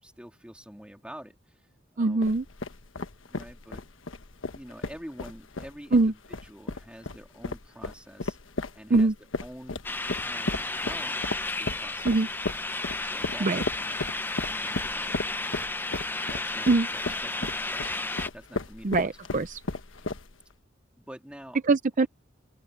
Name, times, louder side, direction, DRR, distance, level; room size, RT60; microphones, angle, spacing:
voice 1, 0.0-1.6 1.9-2.3 3.3-3.8 4.5-8.4 8.7-9.1 9.4-9.8 10.1-11.2 11.6-12.2 13.0-14.0 14.4-15.4 16.2-19.1 21.0-21.6, equal, 5° right, 3.2 m, -47 dB
voice 2, 2.0-2.4 5.9-6.1 8.9-9.1 12.0-12.3 13.4-13.6 16.7-16.9 18.8-19.6 21.6-22.1, right 3 dB, 40° right, 0.5 m, -22 dB
sound 1, 2.2-20.5, left 3 dB, 80° left, 1.3 m, -35 dB
sound 2, 9.8-18.3, left 2 dB, 10° left, 0.7 m, -32 dB
open air
head